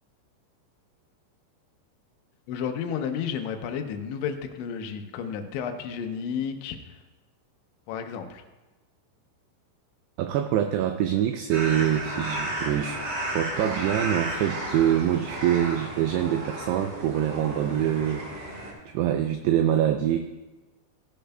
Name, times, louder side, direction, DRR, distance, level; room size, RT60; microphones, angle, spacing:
voice 1, 2.5-7.0 7.9-8.4, left 7 dB, 80° left, 6 dB, 3.0 m, -32 dB
voice 2, 10.2-18.5 18.9-20.2, right 11 dB, 85° right, 7 dB, 2.4 m, -25 dB
sound 1, 11.5-18.7, right 1 dB, 50° right, 3.4 m, -33 dB
17.0 x 10.0 x 2.2 m, 1.1 s
omnidirectional pair, 5.3 m